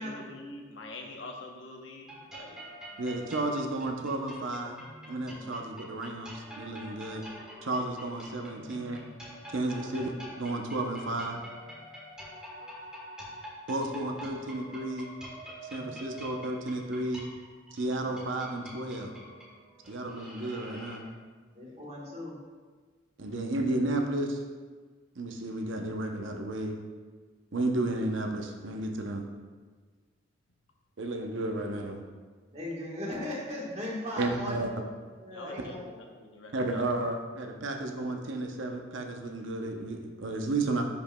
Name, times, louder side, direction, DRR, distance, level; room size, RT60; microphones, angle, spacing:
voice 1, 0.0-2.6 35.3-37.1, left 2 dB, 75° left, 2 dB, 0.9 m, -45 dB
sound 1, 2.0-21.0, equal, 5° right, 1.2 m, -46 dB
voice 2, 3.0-4.8 5.1-7.2 7.6-9.0 9.5-11.4 13.7-15.1 15.7-17.2 17.7-19.1 19.9-21.0 23.2-24.4 25.2-26.8 27.5-29.2 31.0-32.0 34.2-34.7 36.5-40.8, right 2 dB, 75° right, 3 dB, 0.7 m, -32 dB
voice 3, 21.5-22.4 32.5-34.9 35.2-35.9, left 1 dB, 30° right, -4 dB, 1.3 m, -38 dB
10.5 x 5.0 x 2.2 m, 1.5 s
head